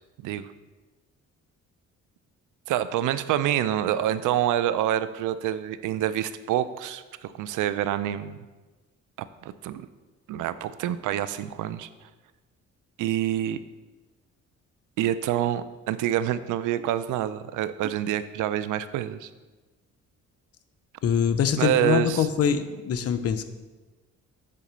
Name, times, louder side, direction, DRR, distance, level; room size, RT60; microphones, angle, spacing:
voice 1, 2.7-8.4 9.4-9.9 10.3-11.9 13.0-13.6 15.0-19.3 21.6-22.3, right 11 dB, 85° right, 14 dB, 0.5 m, -27 dB
voice 2, 21.0-23.4, left 8 dB, 55° left, 10 dB, 0.6 m, -24 dB
7.6 x 4.0 x 6.7 m, 1.2 s
cardioid pair, 90°, 30 cm